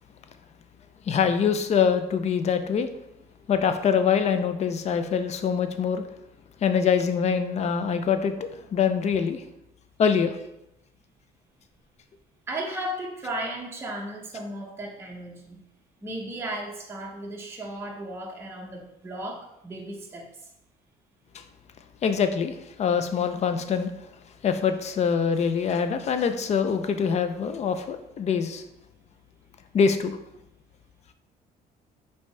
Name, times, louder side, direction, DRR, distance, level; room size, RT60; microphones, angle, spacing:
voice 1, 1.1-2.9 3.5-6.0 6.6-9.4 10.0-10.4 21.3-21.4 22.0-23.9 24.4-28.6 29.7-30.2, left 6 dB, 40° left, 9 dB, 0.5 m, -24 dB
voice 2, 12.5-15.6 16.0-20.3, right 1 dB, 15° right, -1 dB, 0.7 m, -35 dB
5.0 x 2.7 x 3.3 m, 0.82 s
cardioid pair, 110°, 17 cm